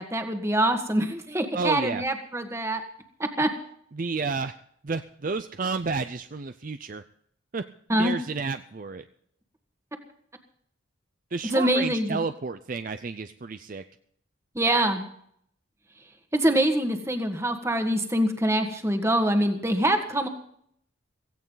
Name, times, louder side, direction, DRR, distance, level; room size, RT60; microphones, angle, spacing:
voice 1, 0.0-2.8 3.2-3.5 7.9-8.2 11.5-12.2 14.6-15.1 16.3-20.3, right 1 dB, 15° right, 6 dB, 1.6 m, -24 dB
voice 2, 1.5-2.0 3.9-4.6 4.8-7.0 7.5-7.6 8.0-9.0 11.3-13.8, right 4 dB, 40° right, 10 dB, 0.5 m, -31 dB
16.5 x 16.0 x 4.0 m, 0.66 s
head